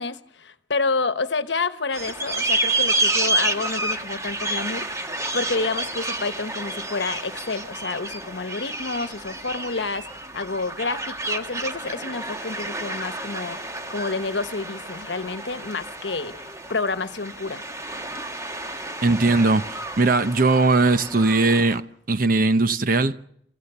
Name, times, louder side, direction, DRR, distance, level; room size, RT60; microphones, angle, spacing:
voice 1, 0.0-17.6, left 3 dB, 80° left, 1.1 m, -29 dB
sound 1, 1.9-21.8, right 2 dB, 20° right, 1.3 m, -30 dB
voice 2, 19.0-23.2, right 3 dB, 55° right, 0.9 m, -19 dB
28.5 x 15.0 x 6.8 m
head